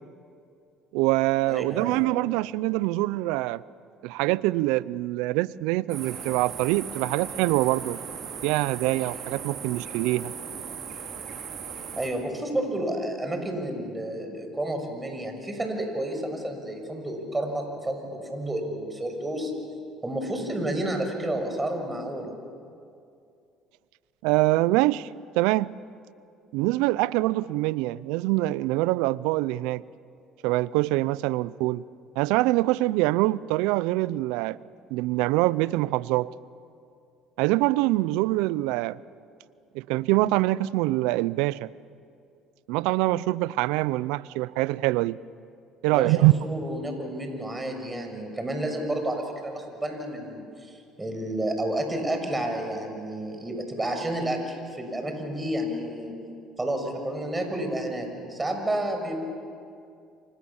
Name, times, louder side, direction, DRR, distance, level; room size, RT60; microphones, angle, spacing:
voice 1, 0.9-3.6 4.0-8.0 8.4-10.3 24.2-25.1 25.3-25.7 26.5-29.8 30.4-31.8 32.2-34.6 34.9-36.3 37.4-39.0 39.7-41.7 42.7-45.2 45.8-46.3, right 19 dB, 80° right, 20 dB, 0.5 m, -24 dB
voice 2, 1.5-2.0 12.0-19.5 20.0-22.3 45.9-56.1 56.6-59.2, right 1 dB, 15° right, 4 dB, 6.3 m, -30 dB
sound 1, 5.9-12.1, right 6 dB, 55° right, 5.4 m, -37 dB
29.0 x 25.0 x 7.2 m, 2.4 s
supercardioid pair, 80°, 0 cm